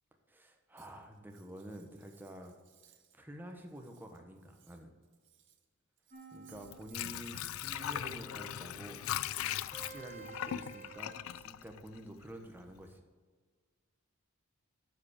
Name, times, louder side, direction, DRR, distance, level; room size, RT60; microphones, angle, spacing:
voice 1, 0.3-2.5 3.1-4.9 6.3-9.0 9.6-13.0, equal, 10° right, 3 dB, 0.9 m, -49 dB
Cutlery silverware, 0.8-3.2 3.5-5.7 6.0-8.2, right 10 dB, 60° right, 0.9 m, -64 dB
sound 1, 6.1-7.0 7.7-11.2, right 3 dB, 40° right, 1.8 m, -52 dB
Water / Sink (filling or washing), 6.5-12.4 12.8-12.9, left 12 dB, 70° left, 0.3 m, -39 dB
12.0 x 4.9 x 4.9 m, 1.5 s
head